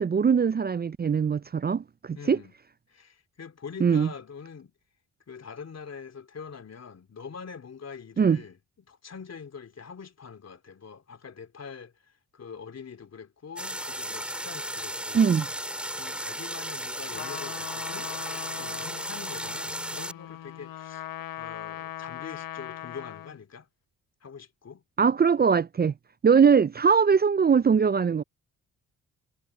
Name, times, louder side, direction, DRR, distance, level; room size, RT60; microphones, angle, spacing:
voice 1, 0.0-2.4 3.8-4.1 8.2-8.4 15.1-15.5 25.0-25.9 26.2-28.2, right 6 dB, 25° right, 0.5 m, -21 dB
voice 2, 2.1-2.5 2.9-4.7 5.3-8.6 8.9-15.4 16.0-18.1 18.5-21.0 21.4-23.7 24.2-24.8, left 6 dB, 45° left, 3.0 m, -44 dB
sound 1, 13.6-20.1, equal, 5° right, 5.1 m, -35 dB
Trumpet, 17.1-23.4, left 12 dB, 65° left, 1.4 m, -40 dB
supercardioid pair, 55°, 36 cm